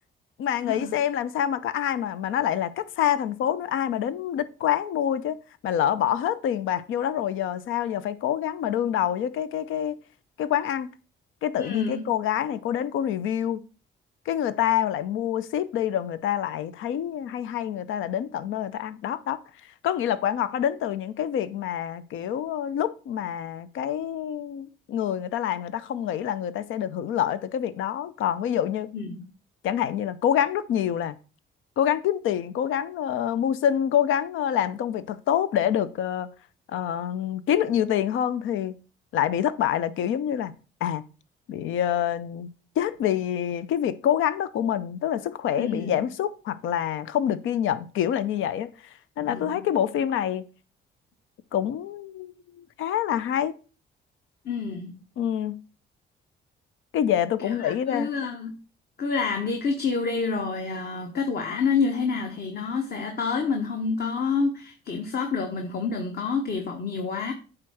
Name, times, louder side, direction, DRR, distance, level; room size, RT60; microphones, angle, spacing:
voice 1, 0.4-5.4 5.6-10.0 10.4-10.9 11.4-13.6 14.3-19.4 19.8-28.9 29.6-31.2 31.8-36.3 36.7-38.7 39.1-40.5 40.8-41.0 41.5-42.5 42.8-48.7 49.2-50.4 51.5-53.6 55.2-55.6 56.9-58.1, left 10 dB, 80° left, 0.7 m, -26 dB
voice 2, 11.6-12.0 28.9-29.3 45.6-46.0 49.2-49.6 54.4-55.0 57.4-58.5 59.0-67.3, left 5 dB, 50° left, 1.3 m, -28 dB
9.0 x 3.7 x 6.2 m
cardioid pair, 90°, 20 cm